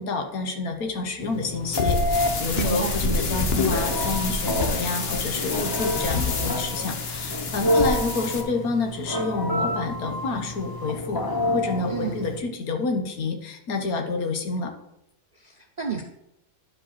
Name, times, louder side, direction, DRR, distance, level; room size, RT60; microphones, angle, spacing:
voice 1, 0.0-11.2 11.5-14.7, left 3 dB, 75° left, 4 dB, 1.6 m, -29 dB
Telephone, 1.2-12.4, left 1 dB, 25° left, 0.5 m, -28 dB
sound 1, 1.7-8.4, left 3 dB, 45° left, 1.0 m, -28 dB
voice 2, 2.6-3.0 11.9-12.2 15.4-16.0, right 5 dB, 55° right, 3 dB, 0.4 m, -30 dB
10.5 x 5.0 x 4.2 m, 0.81 s
omnidirectional pair, 1.6 m